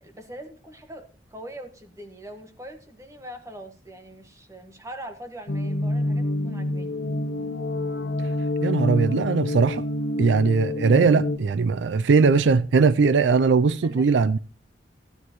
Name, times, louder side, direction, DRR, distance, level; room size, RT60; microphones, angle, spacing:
voice 1, 0.0-7.0 13.8-14.4, right 1 dB, 15° right, 1.5 m, -42 dB
sound 1, 5.5-11.4, left 1 dB, 60° left, 0.8 m, -27 dB
voice 2, 8.6-9.8 10.2-14.4, right 4 dB, 75° right, 0.4 m, -20 dB
15.5 x 9.7 x 3.0 m
head